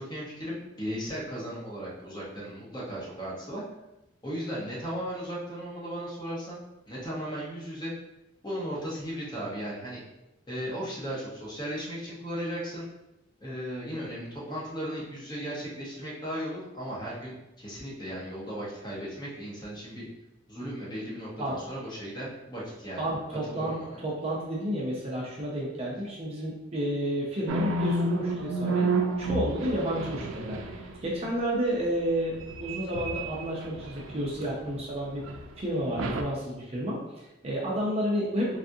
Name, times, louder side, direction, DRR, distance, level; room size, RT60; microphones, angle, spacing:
voice 1, 0.0-3.6 4.2-7.9 8.4-10.0 10.5-12.8 13.4-20.0 20.5-23.0 23.4-24.0, equal, 20° left, -6 dB, 0.8 m, -36 dB
voice 2, 23.0-28.9 29.2-38.6, equal, 30° right, -4 dB, 0.5 m, -31 dB
sound 1, 27.5-31.0 32.4-34.7 35.2-35.4 36.0-36.2, right 2 dB, 80° right, 0.3 m, -30 dB
3.4 x 2.4 x 2.6 m, 0.96 s
head